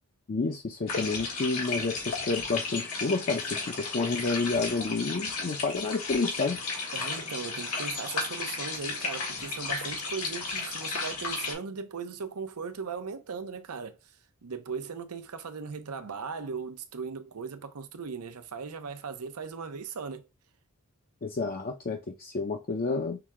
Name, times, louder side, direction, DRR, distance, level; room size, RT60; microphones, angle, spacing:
voice 1, 0.3-6.6 21.2-23.2, left 3 dB, 40° left, 0.5 m, -30 dB
sound 1, 0.9-11.5, left 4 dB, 85° left, 1.8 m, -34 dB
voice 2, 6.9-14.1 14.4-20.3, right 5 dB, 90° right, 0.7 m, -38 dB
5.8 x 2.2 x 3.6 m
head